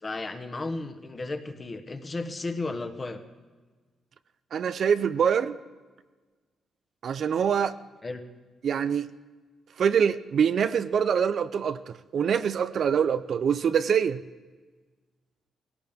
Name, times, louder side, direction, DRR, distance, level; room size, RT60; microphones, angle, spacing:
voice 1, 0.0-3.2 8.0-8.2, left 3 dB, 25° left, 1.1 m, -34 dB
voice 2, 4.5-5.6 7.0-7.8 8.6-9.1 9.8-14.2, right 7 dB, 60° right, 0.5 m, -24 dB
19.5 x 17.0 x 3.6 m
cardioid pair, 115°, 0 cm